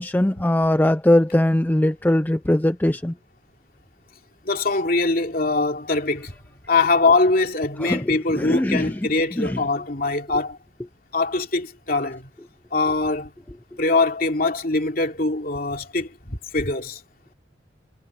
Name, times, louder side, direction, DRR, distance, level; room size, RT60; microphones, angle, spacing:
voice 1, 0.0-3.1 7.8-9.0 9.4-9.6, left 1 dB, 10° left, 0.4 m, -20 dB
voice 2, 4.4-6.3 6.7-10.6 11.1-12.3 12.7-13.3 13.8-17.0, left 3 dB, 50° left, 2.9 m, -22 dB
head